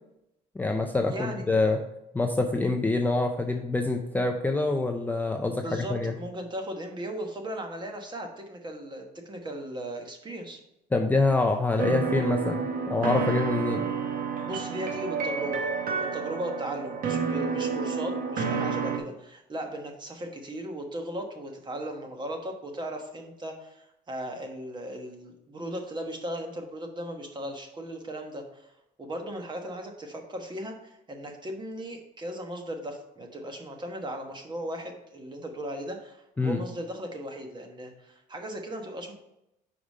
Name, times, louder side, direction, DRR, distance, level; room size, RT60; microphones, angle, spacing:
voice 1, 0.6-1.8 2.1-6.1 10.9-13.8 36.4-36.6, left 3 dB, 10° left, 3 dB, 0.5 m, -26 dB
voice 2, 1.1-1.4 5.5-10.6 14.4-15.6 16.0-28.7 29.0-39.1, right 1 dB, 25° right, 4 dB, 1.2 m, -37 dB
sound 1, 11.8-19.0, right 5 dB, 55° right, 1.0 m, -30 dB
5.0 x 4.9 x 5.3 m, 0.85 s
cardioid pair, 110°, 17 cm